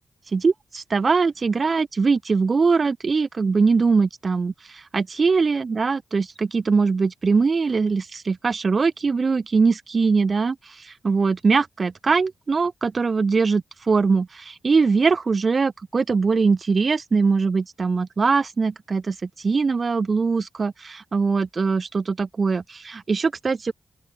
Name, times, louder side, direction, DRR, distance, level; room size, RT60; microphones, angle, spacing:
voice 1, 0.3-23.7, right 4 dB, 50° right, 1.4 m, -22 dB
open air
cardioid pair, 55°, 0 cm